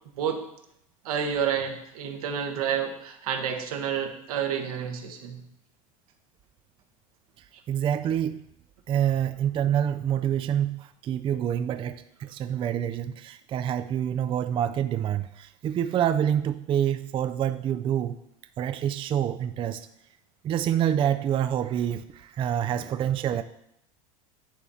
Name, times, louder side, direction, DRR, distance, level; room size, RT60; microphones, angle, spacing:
voice 1, 1.0-5.4, right 8 dB, 75° right, 3 dB, 1.2 m, -29 dB
voice 2, 7.7-8.4 8.9-18.2 18.6-19.9 20.4-23.4, right 10 dB, 30° right, 10 dB, 0.3 m, -27 dB
9.9 x 3.6 x 4.1 m, 0.75 s
hypercardioid pair, 95°, 19 cm